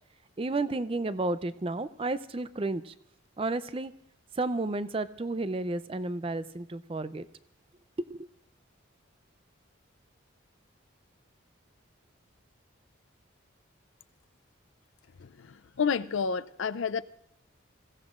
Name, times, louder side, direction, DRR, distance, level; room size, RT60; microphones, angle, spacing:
voice 1, 0.4-2.9 3.4-3.9 4.4-7.3 8.1-8.3, right 2 dB, 25° right, 0.4 m, -32 dB
voice 2, 15.2-17.0, left 6 dB, 70° left, 0.5 m, -30 dB
27.5 x 16.0 x 2.5 m
head